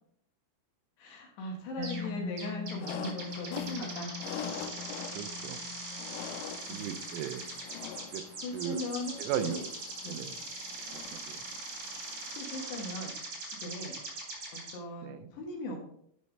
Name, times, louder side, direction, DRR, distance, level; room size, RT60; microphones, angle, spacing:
voice 1, 1.0-4.1 6.7-6.9 8.4-9.6 10.0-10.3 12.3-13.1 13.4-13.9 14.7-15.8, left 1 dB, 70° left, 1 dB, 3.0 m, -39 dB
sound 1, 1.8-2.1 2.4-14.7, right 2 dB, 50° right, 1.7 m, -41 dB
Mallet percussion, 1.8-9.3, left 6 dB, 70° right, 3.0 m, -44 dB
sound 2, 2.8-13.1, left 9 dB, 90° left, 2.5 m, -45 dB
voice 2, 5.1-5.6 6.7-7.5 8.1-8.2 8.5-8.8 9.2-9.6 10.1-10.3 11.1-11.5 15.0-15.3, right 11 dB, 90° right, 11 dB, 3.2 m, -36 dB
11.0 x 5.4 x 3.2 m, 0.70 s
omnidirectional pair, 5.6 m